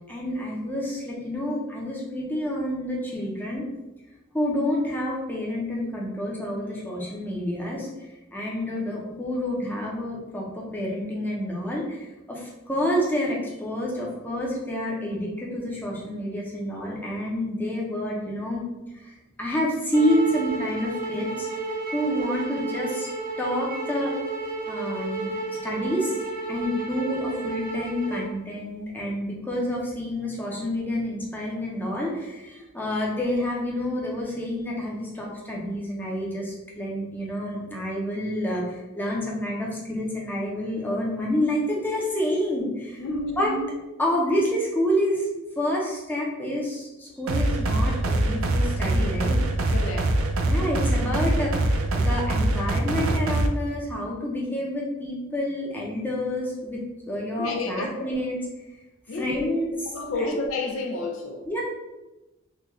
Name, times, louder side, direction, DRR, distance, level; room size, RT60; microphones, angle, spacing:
voice 1, 0.1-3.7 4.3-7.9 8.3-18.6 18.9-21.5 21.9-23.1 23.4-24.1 24.7-26.2 26.5-43.0 43.4-43.5 44.0-45.3 45.6-49.4 50.5-56.8 57.1-58.4 59.1-59.7 60.2-60.4 61.5-61.6, left 1 dB, 10° left, -4 dB, 0.6 m, -28 dB
sound 1, 19.9-28.3, right 3 dB, 40° right, 0.6 m, -32 dB
voice 2, 43.0-43.7 49.7-50.1 57.4-58.1 59.1-59.5 59.9-61.4, left 2 dB, 75° left, 2 dB, 0.5 m, -30 dB
sound 2, 47.3-53.5, right 1 dB, 90° right, 0.4 m, -23 dB
3.7 x 2.3 x 3.1 m, 1.0 s
head